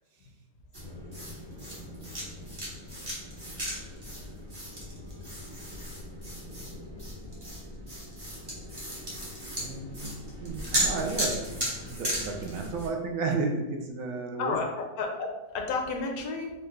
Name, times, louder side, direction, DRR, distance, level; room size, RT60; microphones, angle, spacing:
sound 1, 0.7-12.9, equal, 20° right, 0.8 m, -36 dB
voice 1, 9.6-14.6, right 3 dB, 75° right, 2 dB, 0.9 m, -33 dB
voice 2, 14.4-16.5, left 4 dB, 80° left, 2 dB, 1.1 m, -32 dB
4.2 x 2.3 x 3.1 m, 1.1 s
omnidirectional pair, 1.5 m